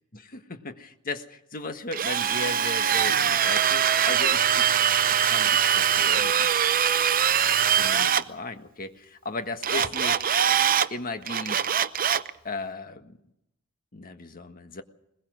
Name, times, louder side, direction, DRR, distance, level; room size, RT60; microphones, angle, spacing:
voice 1, 0.1-4.7 5.3-6.5 7.7-10.3 10.9-11.6 12.4-13.2 13.9-14.8, left 3 dB, 40° left, 7 dB, 1.6 m, -36 dB
Drill, 1.9-8.2 9.6-10.9 11.3-12.3, right 9 dB, 40° right, 0.7 m, -22 dB
21.5 x 21.0 x 6.3 m, 0.81 s
head